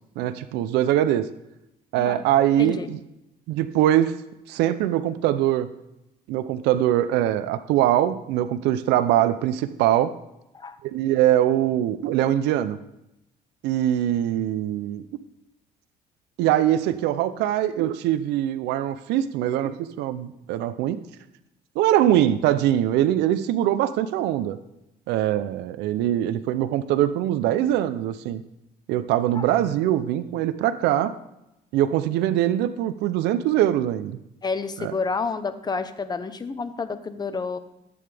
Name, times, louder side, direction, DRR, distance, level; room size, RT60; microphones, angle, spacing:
voice 1, 0.2-1.2 1.9-3.0 3.5-4.2 4.5-5.7 6.3-10.1 10.8-12.8 13.6-15.0 16.4-21.0 21.8-24.6 25.1-28.4 28.9-31.1 31.7-34.2 34.8-34.9, right 12 dB, 90° right, 13 dB, 0.5 m, -22 dB
voice 2, 34.4-37.6, left 4 dB, 25° left, 11 dB, 0.8 m, -29 dB
14.5 x 8.6 x 3.4 m, 0.88 s
cardioid pair, 110°, 17 cm